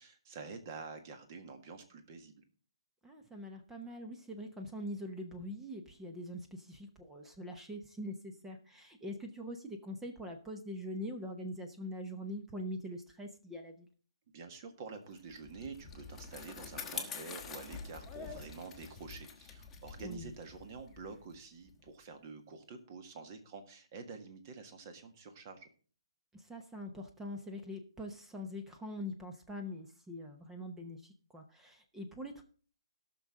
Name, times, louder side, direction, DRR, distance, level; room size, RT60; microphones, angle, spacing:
voice 1, 0.0-2.3 14.3-25.7, right 4 dB, 35° right, 7 dB, 1.7 m, -48 dB
voice 2, 3.0-13.9 20.0-20.3 26.3-32.4, left 1 dB, 5° right, 5 dB, 0.9 m, -43 dB
Bicycle, 15.2-21.9, left 6 dB, 10° left, 1.3 m, -46 dB
18.0 x 6.2 x 3.7 m, 0.41 s
hypercardioid pair, 155°, 3 cm